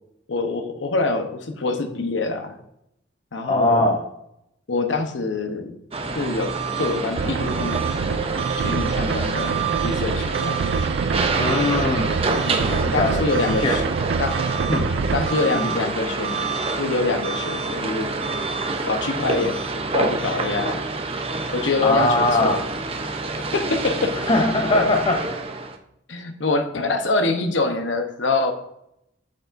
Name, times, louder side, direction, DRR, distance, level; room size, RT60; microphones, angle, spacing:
voice 1, 0.3-2.6 3.3-4.0 4.7-5.7 6.1-7.8 8.6-10.6 12.4-13.8 14.2-14.4 15.1-16.4 16.8-18.1 18.8-19.6 19.9-20.8 21.5-22.6 23.5-24.3 24.7-24.9 26.1-28.5, left 3 dB, 85° left, 6 dB, 0.9 m, -25 dB
voice 2, 3.5-4.0 11.4-12.1 12.7-13.8 14.7-14.9 15.5-15.9 21.8-22.6 24.3-25.2, left 2 dB, 30° left, 2 dB, 0.6 m, -21 dB
sound 1, 5.9-25.8, right 3 dB, 30° right, 0.7 m, -27 dB
sound 2, 7.2-15.3, right 5 dB, 65° right, 0.4 m, -26 dB
8.4 x 8.2 x 2.6 m, 0.79 s
head